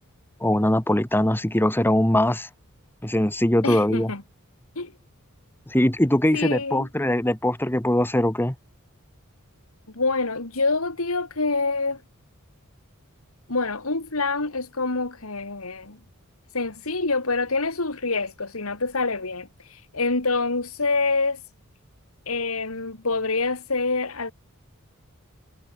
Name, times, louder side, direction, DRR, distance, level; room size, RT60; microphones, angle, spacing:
voice 1, 0.4-2.5 3.0-4.1 5.7-8.5, left 1 dB, 10° left, 1.5 m, -21 dB
voice 2, 3.6-4.2 4.8-4.9 6.3-6.9 9.9-12.0 13.5-16.0 16.5-21.4 22.3-24.3, left 3 dB, 85° left, 2.6 m, -26 dB
head